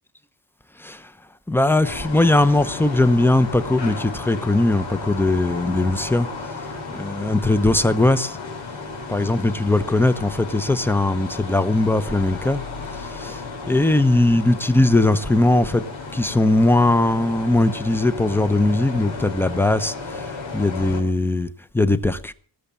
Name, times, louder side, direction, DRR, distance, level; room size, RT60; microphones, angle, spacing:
voice 1, 0.8-1.1 1.5-6.3 6.9-8.4 9.1-12.6 12.9-15.8 16.1-21.5 21.7-22.3, left 2 dB, 5° left, 0.8 m, -19 dB
sound 1, 1.8-21.0, left 3 dB, 90° left, 3.8 m, -34 dB
19.0 x 7.4 x 6.9 m
wide cardioid pair, 150°, 44 cm